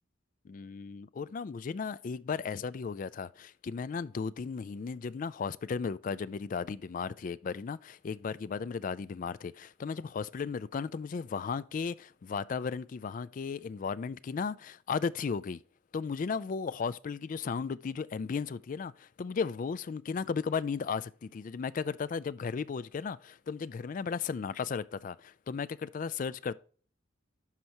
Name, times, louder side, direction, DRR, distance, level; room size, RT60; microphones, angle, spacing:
voice 1, 0.5-15.6 15.9-26.5, left 5 dB, 40° left, 0.3 m, -35 dB
11.5 x 4.6 x 2.8 m
head